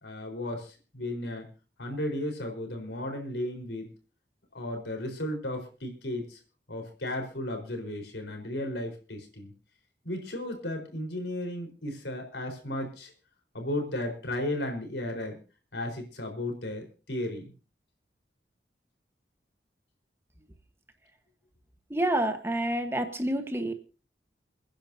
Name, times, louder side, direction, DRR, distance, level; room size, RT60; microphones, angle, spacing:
voice 1, 0.0-1.5 1.8-3.9 4.5-6.4 6.7-9.5 10.0-13.1 13.5-15.4 15.7-17.5, left 1 dB, 85° left, 3 dB, 4.5 m, -34 dB
voice 2, 21.9-23.7, right 1 dB, 15° right, 7 dB, 1.2 m, -28 dB
29.0 x 10.0 x 2.8 m, 0.35 s
head